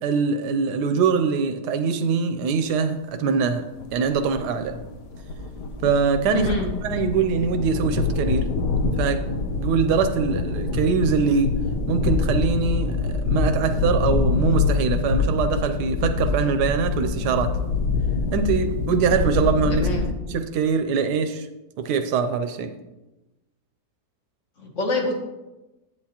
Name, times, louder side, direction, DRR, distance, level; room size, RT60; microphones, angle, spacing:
voice 1, 0.0-3.6 3.9-4.8 5.8-8.5 9.0-9.2 9.5-11.5 11.9-17.5 18.3-19.9 20.3-21.5 21.8-22.7, right 5 dB, 90° right, 8 dB, 1.2 m, -23 dB
sound 1, 3.8-20.1, left 4 dB, 90° left, 1.4 m, -25 dB
voice 2, 6.3-6.7 19.7-20.1 24.6-25.1, left 2 dB, 50° left, 1 dB, 1.6 m, -26 dB
8.6 x 8.2 x 2.9 m, 1.0 s
omnidirectional pair, 1.7 m